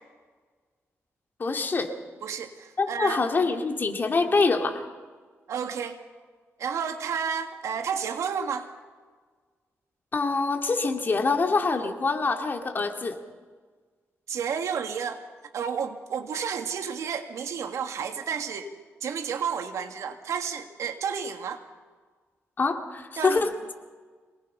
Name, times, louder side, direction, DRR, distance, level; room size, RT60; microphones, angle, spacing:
voice 1, 1.4-1.9 2.8-4.8 10.1-13.2 22.6-23.5, left 4 dB, 40° left, 4 dB, 2.4 m, -25 dB
voice 2, 2.2-3.2 5.5-6.0 6.6-8.7 14.3-15.2 15.5-18.7 19.0-21.6 23.2-23.4, right 7 dB, 85° right, 6 dB, 1.9 m, -31 dB
27.0 x 19.0 x 5.6 m, 1.5 s
cardioid pair, 95°, 5 cm